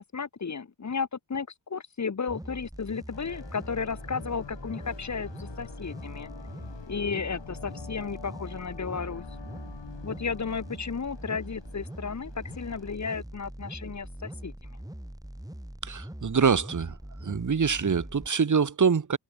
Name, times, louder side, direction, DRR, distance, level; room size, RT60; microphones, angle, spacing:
voice 1, 0.0-6.3 6.9-9.2 10.0-14.8, left 5 dB, 35° left, 1.5 m, -34 dB
sound 1, 2.3-18.3, right 1 dB, 5° right, 5.8 m, -42 dB
sound 2, 3.1-13.0, left 7 dB, 60° left, 4.1 m, -46 dB
voice 2, 15.8-19.2, right 6 dB, 35° right, 1.6 m, -25 dB
cardioid pair, 55°, 49 cm